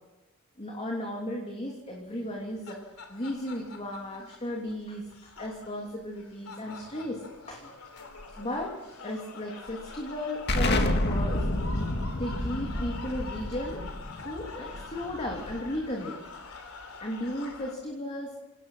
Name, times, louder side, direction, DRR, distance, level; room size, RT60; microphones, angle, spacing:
voice 1, 0.6-2.8 3.1-7.2 7.5-7.7 8.4-11.4 12.2-13.8 14.2-16.2 17.0-18.4, left 1 dB, 30° left, -1 dB, 3.0 m, -35 dB
sound 1, 2.3-17.7, left 4 dB, 75° left, 3.9 m, -45 dB
Explosion, 10.5-15.9, left 1 dB, 50° left, 2.2 m, -29 dB
27.5 x 18.0 x 5.8 m, 1.1 s
head